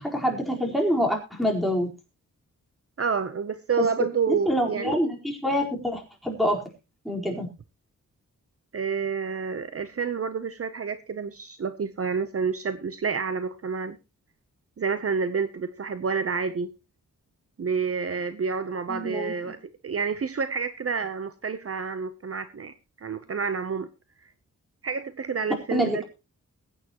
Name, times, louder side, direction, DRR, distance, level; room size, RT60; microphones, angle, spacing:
voice 1, 0.0-1.9 3.8-3.9 4.3-6.6 7.0-7.5 18.9-19.3 25.7-26.0, equal, ahead, 0 dB, 4.3 m, -26 dB
voice 2, 3.0-5.0 8.7-14.0 14.8-16.7 17.6-19.6 19.8-22.7 23.0-23.9 24.8-26.0, right 5 dB, 45° right, 11 dB, 0.8 m, -29 dB
21.5 x 9.1 x 3.0 m, 0.28 s
wide cardioid pair, 95°, 31 cm